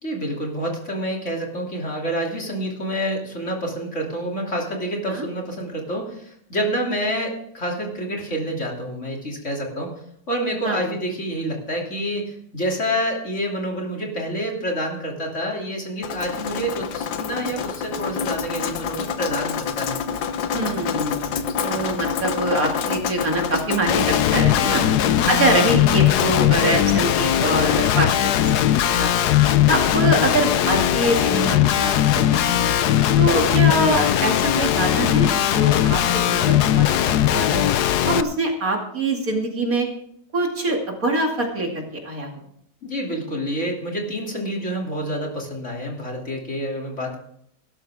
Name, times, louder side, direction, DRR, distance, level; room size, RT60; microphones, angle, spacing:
voice 1, 0.0-9.9 10.3-20.0 24.7-25.5 33.4-33.7 42.8-47.2, equal, 40° left, -1 dB, 3.3 m, -28 dB
Drip, 16.0-31.5, left 7 dB, 90° left, 1.7 m, -29 dB
voice 2, 20.5-24.8 25.3-28.7 29.0-29.1 29.7-32.7 33.2-37.6 38.0-39.9 40.3-42.3, right 2 dB, 50° right, 1 dB, 2.8 m, -24 dB
Guitar, 23.9-38.2, left 12 dB, 70° left, 1.2 m, -19 dB
17.5 x 13.0 x 3.6 m, 0.70 s
omnidirectional pair, 2.0 m